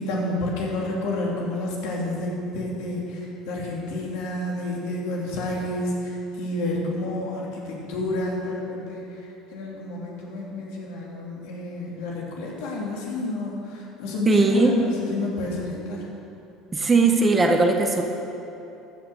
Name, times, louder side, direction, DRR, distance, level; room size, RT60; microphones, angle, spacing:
voice 1, 0.0-16.1, left 1 dB, 80° left, -3 dB, 2.8 m, -30 dB
voice 2, 14.3-14.7 16.7-18.0, right 3 dB, 20° right, 3 dB, 1.2 m, -19 dB
14.5 x 5.9 x 7.0 m, 2.9 s
supercardioid pair, 110°, 0 cm